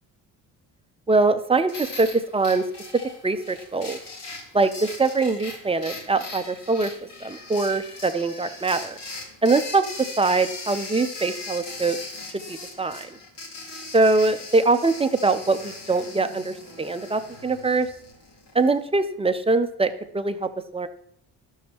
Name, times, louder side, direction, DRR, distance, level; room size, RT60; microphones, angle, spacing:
voice 1, 1.1-2.7 3.2-4.0 4.5-6.9 7.2-8.9 9.4-12.0 12.5-13.1 13.9-17.9 18.5-20.9, right 3 dB, 15° right, 9 dB, 0.5 m, -23 dB
sound 1, 1.7-18.7, left 3 dB, 85° left, 2.3 m, -39 dB
12.0 x 6.3 x 2.9 m, 0.69 s
cardioid pair, 110°, 41 cm